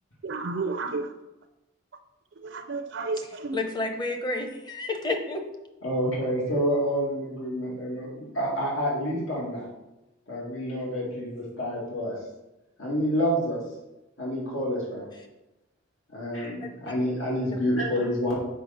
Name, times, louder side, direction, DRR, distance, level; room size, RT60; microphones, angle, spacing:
voice 1, 0.2-1.1 2.4-3.6, right 3 dB, 60° right, 7 dB, 0.5 m, -31 dB
voice 2, 3.2-5.4 15.2-15.3 16.6-16.9 17.5-17.6 18.0-18.1, left 2 dB, 20° left, 4 dB, 0.8 m, -31 dB
voice 3, 5.8-9.7 10.3-12.1 12.8-13.6 14.2-15.1 16.1-18.4, equal, 75° left, -4 dB, 2.3 m, -28 dB
6.7 x 5.5 x 5.2 m, 0.99 s
head